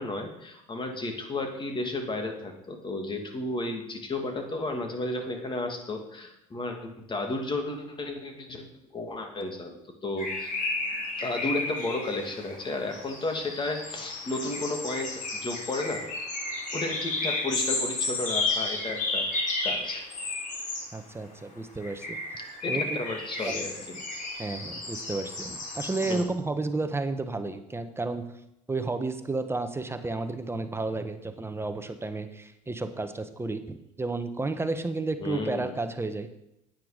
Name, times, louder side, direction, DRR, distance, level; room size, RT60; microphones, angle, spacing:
voice 1, 0.0-8.6 8.9-10.5 11.2-16.0 16.7-20.1 22.6-23.7 26.1-26.3 35.2-35.7, left 2 dB, 30° left, 4 dB, 2.5 m, -33 dB
sound 1, 10.2-20.9 21.8-26.2, left 3 dB, 50° left, 3.3 m, -32 dB
voice 2, 20.9-22.2 22.7-23.0 23.5-23.8 24.4-28.3 28.7-36.3, right 3 dB, 15° right, 9 dB, 1.2 m, -32 dB
9.2 x 9.1 x 5.1 m, 0.82 s
hypercardioid pair, 75°, 16 cm